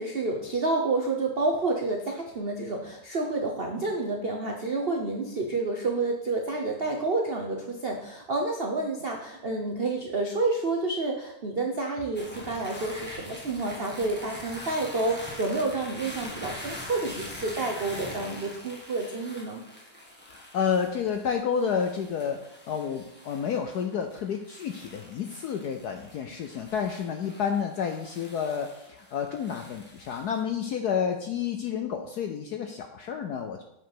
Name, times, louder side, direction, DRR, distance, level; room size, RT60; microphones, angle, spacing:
voice 1, 0.0-19.6, right 3 dB, 70° right, 1 dB, 0.5 m, -29 dB
sound 1, 12.1-30.4, left 1 dB, 5° left, 1.3 m, -44 dB
voice 2, 20.3-33.6, left 7 dB, 70° left, 5 dB, 0.9 m, -30 dB
7.7 x 5.3 x 5.9 m, 0.81 s
omnidirectional pair, 2.3 m